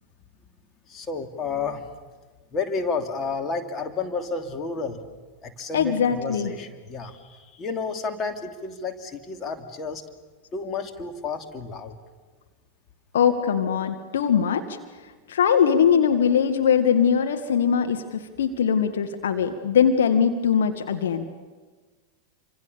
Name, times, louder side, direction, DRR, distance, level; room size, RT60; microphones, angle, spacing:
voice 1, 0.9-1.8 2.5-5.0 5.4-10.0 10.5-12.0, left 4 dB, 25° left, 5 dB, 2.7 m, -31 dB
voice 2, 5.7-6.5 13.1-14.6 15.3-18.0 18.4-21.3, left 7 dB, 60° left, 6 dB, 1.7 m, -21 dB
29.0 x 25.5 x 7.0 m, 1.4 s
figure-of-eight pair, 90°, 0 cm